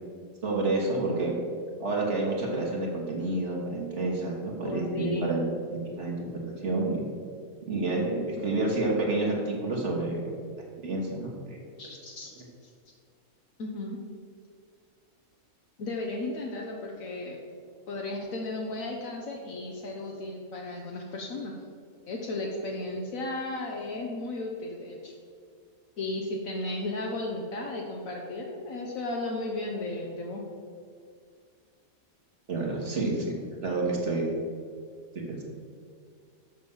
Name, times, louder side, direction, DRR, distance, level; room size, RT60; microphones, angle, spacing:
voice 1, 0.4-1.4 1.8-5.4 5.7-7.0 7.7-10.3 10.8-11.6 32.5-34.3 35.1-35.4, right 2 dB, 55° right, -2 dB, 1.6 m, -29 dB
voice 2, 4.6-5.3 8.5-8.7 11.8-12.3 12.6-12.7 13.6-14.0 15.8-17.4 17.9-21.5 22.1-25.1 26.0-30.4, left 2 dB, 70° left, 0 dB, 1.3 m, -34 dB
6.4 x 6.0 x 7.1 m, 2.2 s
omnidirectional pair, 1.5 m